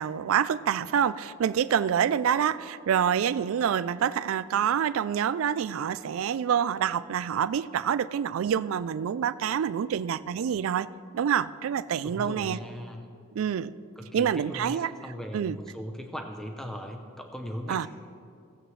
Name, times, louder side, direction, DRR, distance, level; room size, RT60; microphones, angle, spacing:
voice 1, 0.0-10.9 11.1-12.6 13.4-13.7 14.1-14.9 15.3-15.6 17.7-17.9, right 8 dB, 70° right, 16 dB, 0.3 m, -27 dB
voice 2, 12.0-13.1 14.0-17.9, equal, ahead, 3 dB, 0.6 m, -38 dB
18.0 x 7.7 x 3.2 m, 2.3 s
head